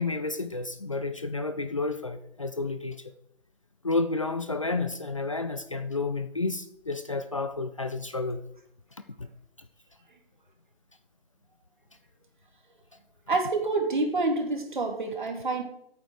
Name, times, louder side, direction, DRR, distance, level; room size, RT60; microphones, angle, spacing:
voice 1, 0.0-3.1 3.8-8.4 9.2-9.3, left 3 dB, 35° left, 10 dB, 0.6 m, -31 dB
voice 2, 13.3-15.6, right 3 dB, 55° right, 4 dB, 3.1 m, -27 dB
11.0 x 8.8 x 6.6 m, 0.75 s
figure-of-eight pair, 160°, 30 cm